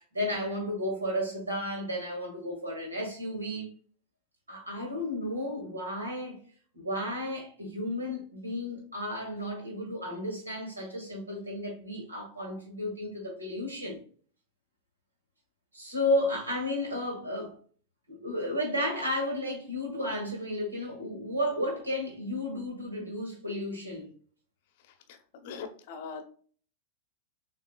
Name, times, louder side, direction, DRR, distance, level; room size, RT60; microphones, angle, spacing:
voice 1, 0.0-3.7 4.5-6.4 6.7-14.0 15.7-17.5 18.1-24.1, left 1 dB, 80° right, 1.8 m, -33 dB
voice 2, 24.8-26.3, left 5 dB, 50° left, 0.8 m, -42 dB
6.6 x 2.8 x 2.3 m
figure-of-eight pair, 90°, 0 cm